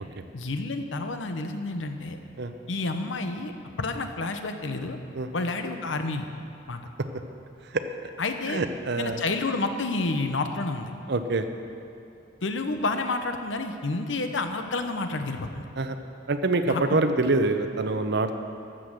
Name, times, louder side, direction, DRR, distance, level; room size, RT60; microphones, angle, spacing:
voice 1, 0.3-2.2 2.7-3.5 3.8-5.0 5.3-6.3 6.7-6.8 8.2-8.6 9.0-10.9 12.4-15.7 16.7-17.0, left 3 dB, 90° left, 6 dB, 0.9 m, -29 dB
voice 2, 8.5-9.2 11.1-11.5 15.8-16.0 16.3-18.3, right 3 dB, 65° right, 8 dB, 0.7 m, -25 dB
13.5 x 7.6 x 6.3 m, 2.7 s
head